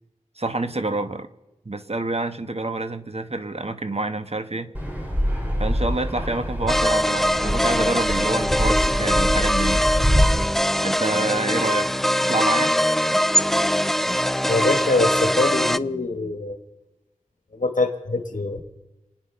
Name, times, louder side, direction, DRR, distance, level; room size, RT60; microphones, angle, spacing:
voice 1, 0.4-1.3 1.6-4.7 5.6-9.9 10.8-11.9 12.2-12.8, right 2 dB, 50° right, 9 dB, 1.2 m, -27 dB
Fixed-wing aircraft airplane, 4.7-10.2, equal, 15° right, 4.1 m, -25 dB
sound 1, 6.7-15.8, equal, ahead, 0.4 m, -22 dB
voice 2, 14.5-16.6 17.5-18.6, left 3 dB, 80° left, 5 dB, 1.4 m, -24 dB
27.0 x 9.6 x 5.6 m, 1.0 s
wide cardioid pair, 40°, 13 cm